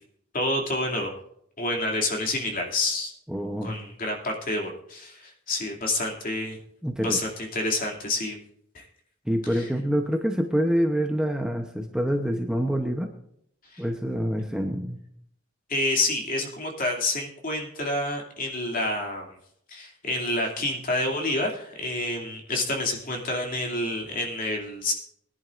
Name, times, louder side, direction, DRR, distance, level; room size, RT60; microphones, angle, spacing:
voice 1, 0.3-1.1 1.6-3.1 3.6-6.6 7.0-8.4 8.7-8.8 13.7-13.8 15.7-19.3 19.7-24.9, left 2 dB, 45° left, 0 dB, 2.6 m, -28 dB
voice 2, 3.3-3.8 6.8-7.2 9.3-13.1 13.8-15.0, equal, 5° right, 3 dB, 0.8 m, -26 dB
21.5 x 10.5 x 2.5 m, 0.71 s
head